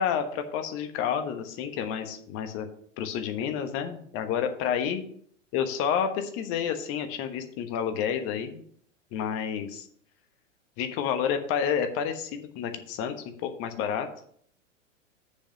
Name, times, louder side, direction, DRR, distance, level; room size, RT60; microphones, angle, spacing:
voice 1, 0.0-2.7 3.0-5.0 5.5-8.6 9.1-9.8 10.8-13.1 13.4-14.1, left 8 dB, 35° left, 8 dB, 1.2 m, -29 dB
6.9 x 5.6 x 6.6 m, 0.63 s
figure-of-eight pair, 100°, 39 cm